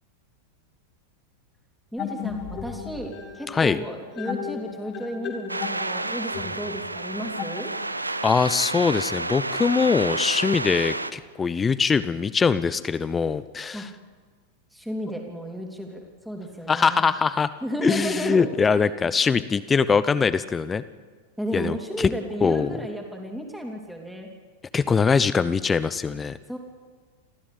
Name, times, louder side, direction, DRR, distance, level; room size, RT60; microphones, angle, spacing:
voice 1, 1.9-7.7 13.7-13.8 14.7-17.0 17.6-18.5 21.4-24.3 26.5-26.6, equal, ahead, 1 dB, 3.3 m, -33 dB
sound 1, 2.0-8.2, left 8 dB, 30° left, 2.2 m, -36 dB
voice 2, 3.5-3.8 8.2-13.9 16.7-17.5 17.8-20.8 21.5-22.1 22.4-22.7 24.7-26.4, left 5 dB, 15° left, 15 dB, 0.8 m, -22 dB
sound 2, 5.5-11.1, right 2 dB, 85° right, 0.8 m, -30 dB
28.5 x 14.5 x 8.5 m, 1.5 s
figure-of-eight pair, 90°, 0 cm